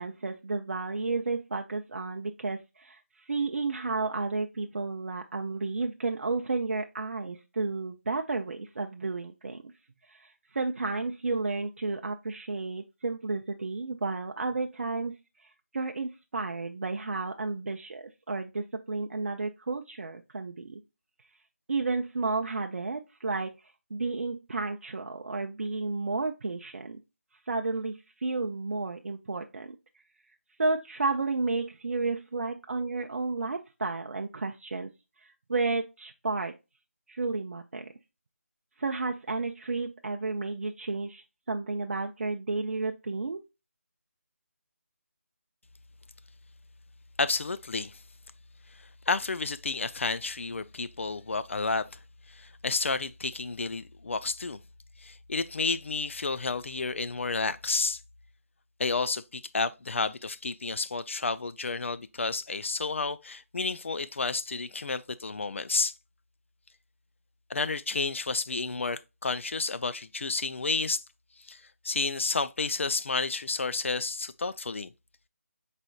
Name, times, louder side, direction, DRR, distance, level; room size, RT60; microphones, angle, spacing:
voice 1, 0.0-3.0 3.3-9.6 10.1-15.2 15.7-20.8 21.7-23.5 23.9-27.0 27.5-29.8 30.6-34.9 35.5-36.6 37.1-37.9 38.8-43.4, right 3 dB, 55° right, 0.5 m, -32 dB
voice 2, 47.2-48.0 49.1-52.0 52.3-54.6 55.0-58.0 58.8-65.9 67.5-71.0 71.4-74.9, left 4 dB, 55° left, 0.4 m, -31 dB
4.9 x 4.1 x 2.3 m
figure-of-eight pair, 160°, 8 cm